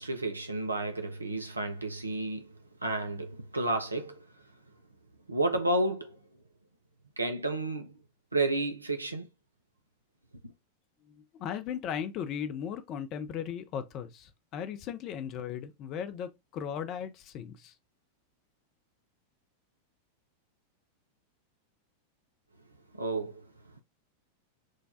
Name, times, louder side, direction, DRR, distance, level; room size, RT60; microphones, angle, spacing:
voice 1, 0.0-2.5 2.8-4.3 5.3-6.2 7.2-8.0 8.3-9.3 22.9-23.5, right 2 dB, 80° right, 0.4 m, -31 dB
voice 2, 11.1-17.7, left 8 dB, 35° left, 0.5 m, -37 dB
6.2 x 2.2 x 2.6 m
figure-of-eight pair, 90°, 0 cm